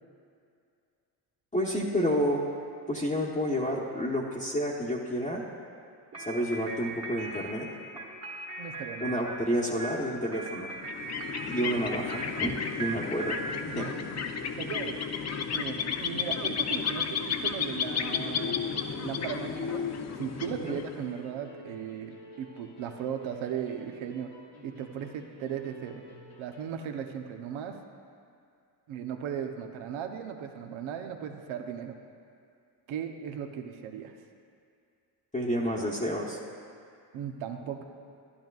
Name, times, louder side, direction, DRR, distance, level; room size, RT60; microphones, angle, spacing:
voice 1, 1.5-2.4 2.9-5.4 6.2-7.7 9.0-10.7 11.5-13.4 13.7-13.9 20.6-20.8 35.3-36.4, equal, 15° left, -4 dB, 1.1 m, -30 dB
sound 1, 6.1-14.4, right 2 dB, 30° right, 1.7 m, -40 dB
voice 2, 8.6-9.2 13.8-14.1 14.6-15.0 15.5-18.6 18.9-19.9 20.2-24.3 24.6-26.0 26.4-27.8 28.9-32.0 32.9-34.1 37.1-37.8, right 8 dB, 75° right, 5 dB, 0.9 m, -37 dB
sound 2, 10.8-21.2, left 6 dB, 35° left, 0.6 m, -33 dB
sound 3, 17.8-26.6, left 1 dB, 85° left, 1.8 m, -52 dB
11.5 x 10.5 x 2.4 m, 2.4 s
supercardioid pair, 75°, 48 cm